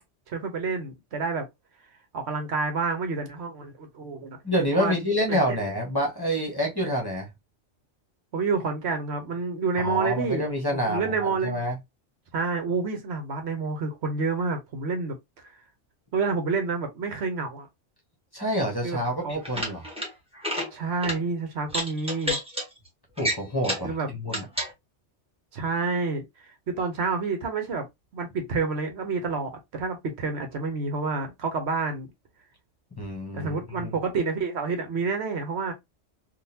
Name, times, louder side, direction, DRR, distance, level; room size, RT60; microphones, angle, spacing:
voice 1, 0.3-1.5 2.1-4.4 4.7-4.9 5.3-5.4 8.3-10.5 10.7-11.6 12.3-15.5 16.1-17.7 18.8-19.0 19.2-19.4 20.7-22.4 23.8-24.1 25.5-26.2 26.7-27.9 28.1-32.1 33.3-35.7, right 4 dB, 70° right, 1.1 m, -28 dB
voice 2, 4.4-7.3 9.8-11.7 18.3-19.8 23.2-24.5 33.0-34.0, equal, 20° left, 1.0 m, -27 dB
sound 1, 19.3-20.1 20.4-20.7 21.0-21.2 21.7-22.6 23.2-23.9 24.3-24.7, equal, 5° right, 1.2 m, -29 dB
3.7 x 2.6 x 2.7 m
omnidirectional pair, 1.2 m